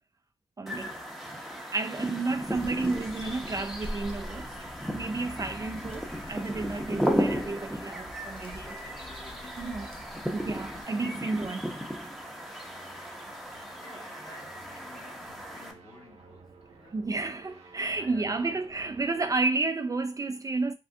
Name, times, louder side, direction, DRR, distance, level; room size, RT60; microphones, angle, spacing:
voice 1, 0.6-0.9 1.7-4.5 4.9-8.7 9.6-9.9 10.3-11.7 16.9-20.7, right 3 dB, 35° right, 0.3 m, -31 dB
sound 1, 0.7-15.7, equal, ahead, 0.7 m, -35 dB
Hands, 2.4-10.8, left 1 dB, 55° left, 0.8 m, -45 dB
sound 2, 6.7-19.3, right 4 dB, 75° right, 0.7 m, -56 dB
voice 2, 8.4-11.2 12.4-12.9 13.3-17.0 17.9-18.7, left 1 dB, 35° left, 1.2 m, -53 dB
3.3 x 2.3 x 2.6 m
cardioid pair, 70°, 11 cm